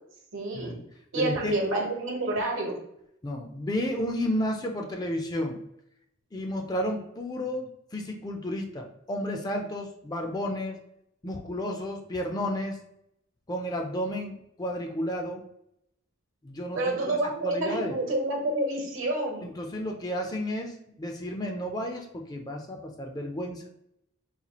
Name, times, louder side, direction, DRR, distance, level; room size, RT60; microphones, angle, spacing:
voice 1, 0.3-0.8 1.1-2.7 16.7-19.4, right 2 dB, 75° right, 0 dB, 1.0 m, -28 dB
voice 2, 1.2-1.6 3.2-5.6 6.3-10.8 11.2-12.8 13.5-15.4 16.4-17.2 17.4-18.0 19.4-23.6, left 1 dB, 20° left, 2 dB, 0.4 m, -32 dB
4.1 x 2.3 x 2.9 m, 0.77 s
head